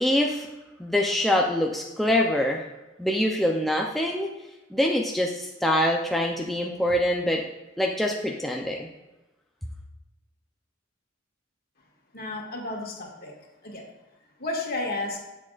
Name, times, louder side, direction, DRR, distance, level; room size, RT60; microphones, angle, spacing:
voice 1, 0.0-0.5 0.8-2.6 3.0-4.3 4.7-7.4 7.8-8.9, left 1 dB, ahead, -1 dB, 0.5 m, -24 dB
voice 2, 12.1-13.3 13.6-13.8 14.4-15.2, left 2 dB, 50° left, -1 dB, 1.9 m, -32 dB
11.5 x 7.5 x 2.5 m, 1.0 s
head